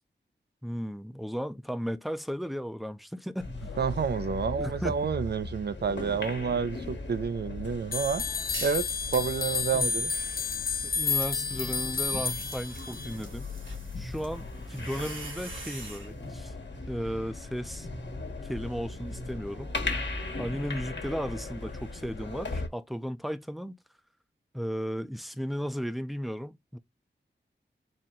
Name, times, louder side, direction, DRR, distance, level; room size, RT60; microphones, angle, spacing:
voice 1, 0.6-3.8 4.6-5.1 9.7-9.9 10.8-13.5 14.0-16.5 16.9-17.9 18.4-19.7 20.4-23.8 24.5-26.8, equal, ahead, 0.5 m, -35 dB
sound 1, 3.4-22.7, left 3 dB, 70° left, 1.3 m, -38 dB
voice 2, 3.8-8.2 8.6-10.1 20.3-20.4, right 6 dB, 60° right, 0.5 m, -29 dB
sound 2, 7.9-13.1, left 5 dB, 50° left, 0.5 m, -31 dB
sound 3, 8.5-8.9 9.3-16.1, right 2 dB, 90° right, 1.8 m, -46 dB
4.3 x 2.2 x 3.7 m
cardioid pair, 50°, 19 cm